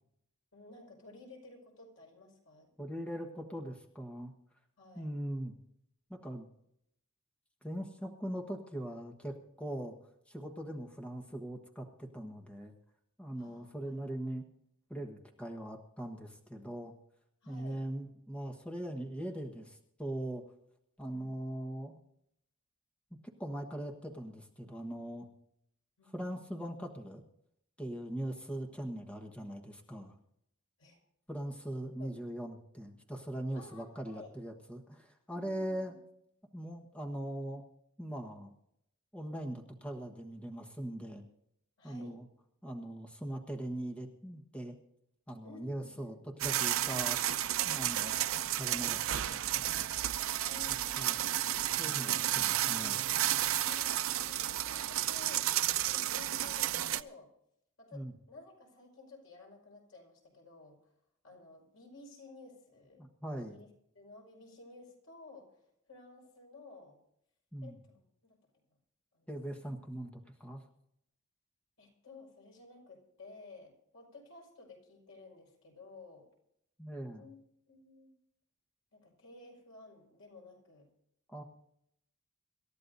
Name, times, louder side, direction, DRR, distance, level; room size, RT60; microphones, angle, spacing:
voice 1, 0.5-2.7 4.8-5.1 13.4-14.0 17.4-17.8 21.1-21.3 26.0-26.2 30.8-31.0 32.0-32.1 33.5-34.3 35.3-35.9 41.8-42.2 45.4-46.2 50.4-51.9 53.6-55.4 55.8-57.3 57.8-60.8 61.2-63.0 63.4-63.7 64.0-65.6 65.9-67.0 67.6-68.4 69.1-69.3 71.8-76.3 77.1-77.4 77.7-78.1 78.9-80.9, left 3 dB, 85° left, 0 dB, 5.3 m, -54 dB
voice 2, 2.8-4.3 4.9-5.5 6.1-6.5 7.6-9.9 10.3-12.7 13.2-14.4 14.9-16.9 17.5-20.4 21.0-22.0 23.4-25.3 26.1-27.2 27.8-30.1 31.3-35.9 36.5-37.6 38.0-38.5 39.1-41.2 41.8-42.2 42.6-44.8 45.3-48.1 48.6-49.5 49.7-49.9 50.7-51.2 51.8-53.0 57.9-58.1 63.0-63.6 67.5-67.8 69.3-70.6 76.8-77.3 81.3-81.4, right 1 dB, 5° left, 2 dB, 1.3 m, -41 dB
sound 1, 46.4-57.0, right 12 dB, 80° right, 0.5 m, -32 dB
26.5 x 13.0 x 2.7 m, 0.76 s
head